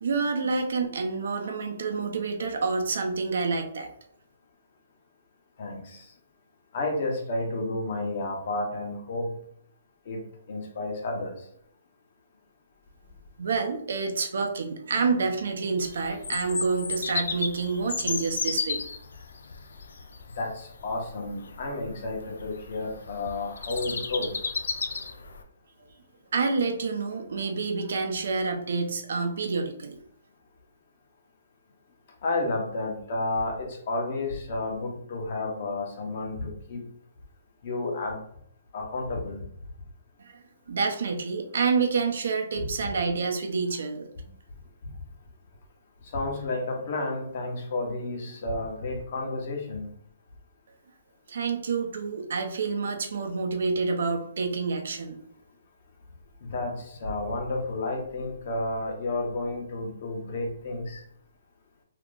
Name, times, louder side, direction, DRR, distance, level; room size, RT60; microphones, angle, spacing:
voice 1, 0.0-3.9 13.4-18.8 25.8-25.9 26.3-30.0 40.2-44.3 51.3-55.2, right 4 dB, 70° right, 5 dB, 0.6 m, -28 dB
voice 2, 5.6-6.1 6.7-9.4 10.0-11.4 20.3-24.4 32.2-36.9 37.6-38.2 38.7-39.5 46.0-49.9 56.4-61.0, left 2 dB, 50° left, 1 dB, 1.0 m, -31 dB
Bird vocalization bird call bird song, 15.8-25.4, left 4 dB, 85° left, 0.4 m, -34 dB
2.8 x 2.4 x 3.7 m, 0.65 s
hypercardioid pair, 155°, 0 cm